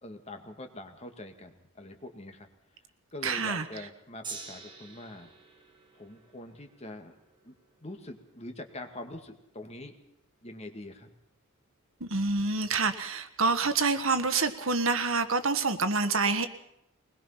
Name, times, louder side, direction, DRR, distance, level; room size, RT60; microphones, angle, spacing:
voice 1, 0.0-2.5 3.1-5.3 5.9-7.1 7.4-7.5 7.8-10.0 10.4-11.1, left 1 dB, 30° left, 5 dB, 2.1 m, -44 dB
voice 2, 3.2-3.9 12.0-16.5, right 4 dB, 65° right, 9 dB, 1.6 m, -27 dB
Gong, 4.2-10.6 11.4-11.5, right 4 dB, 20° right, 2.8 m, -49 dB
22.0 x 21.0 x 5.8 m, 0.80 s
head